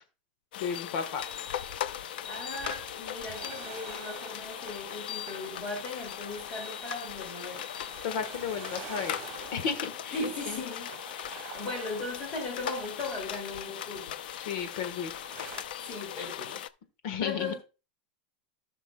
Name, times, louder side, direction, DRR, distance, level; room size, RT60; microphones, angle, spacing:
sound 1, 0.5-16.7, left 11 dB, 70° left, 0.5 m, -39 dB
voice 1, 0.5-1.2 8.0-9.2 9.5-10.6 14.4-15.1 17.0-17.5, left 6 dB, 50° left, 10 dB, 1.3 m, -33 dB
sound 2, 1.0-15.6, right 9 dB, 40° right, 1.5 m, -49 dB
voice 2, 2.3-7.7 10.1-11.0 11.3-14.2 15.8-16.6 17.2-17.5, left 3 dB, 25° left, 0 dB, 2.5 m, -38 dB
15.5 x 6.1 x 2.2 m, 0.31 s
supercardioid pair, 175°, 5 cm